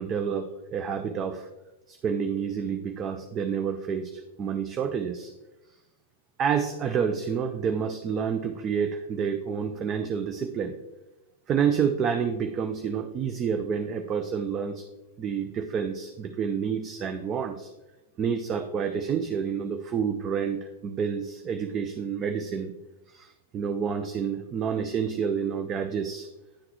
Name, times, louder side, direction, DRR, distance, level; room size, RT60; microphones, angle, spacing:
voice 1, 0.0-1.5 1.9-5.3 6.4-10.8 11.5-14.8 15.2-17.7 18.2-22.7 23.1-26.3, right 7 dB, 30° right, 8 dB, 0.4 m, -29 dB
9.9 x 3.8 x 3.0 m, 1.0 s
hypercardioid pair, 105°, 0 cm